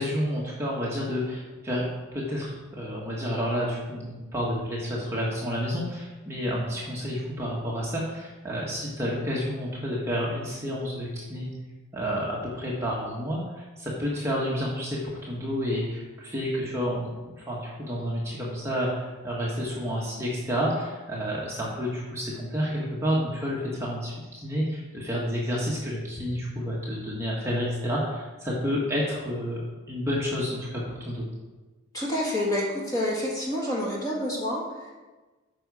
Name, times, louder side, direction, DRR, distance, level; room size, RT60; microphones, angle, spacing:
voice 1, 0.0-11.5 11.9-17.1 17.4-29.6 29.9-31.3, equal, 15° right, -5 dB, 1.3 m, -30 dB
voice 2, 31.9-34.9, left 1 dB, 15° left, -4 dB, 1.7 m, -28 dB
8.9 x 6.0 x 4.8 m, 1.2 s
head